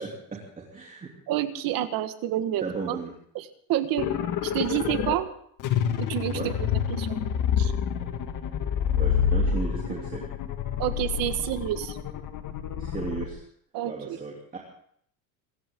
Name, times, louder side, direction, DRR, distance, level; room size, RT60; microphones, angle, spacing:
voice 1, 0.0-1.1 2.6-3.1 6.3-6.5 9.0-10.2 12.8-13.4 13.8-14.6, right 4 dB, 20° right, -2 dB, 3.1 m, -35 dB
voice 2, 1.3-3.0 3.3-3.4 3.7-4.1 4.4-5.3 6.0-7.2 7.6-7.7 10.8-12.0 13.7-14.2, right 12 dB, 65° right, 10 dB, 1.7 m, -29 dB
sound 1, 4.0-5.1 5.6-13.3, left 8 dB, 55° left, 1.9 m, -27 dB
26.5 x 14.5 x 3.8 m, 0.65 s
cardioid pair, 145°, 36 cm